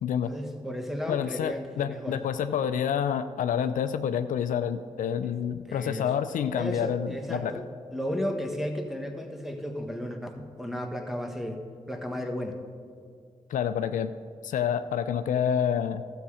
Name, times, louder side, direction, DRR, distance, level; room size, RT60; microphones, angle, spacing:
voice 1, 0.2-2.2 5.2-5.4 5.6-6.1 6.6-11.6 11.9-12.6, equal, ahead, 5 dB, 1.4 m, -34 dB
voice 2, 1.1-7.5 13.5-14.1 14.4-16.0, left 8 dB, 75° left, 11 dB, 0.4 m, -28 dB
13.0 x 7.3 x 4.9 m, 2.2 s
supercardioid pair, 45°, 14 cm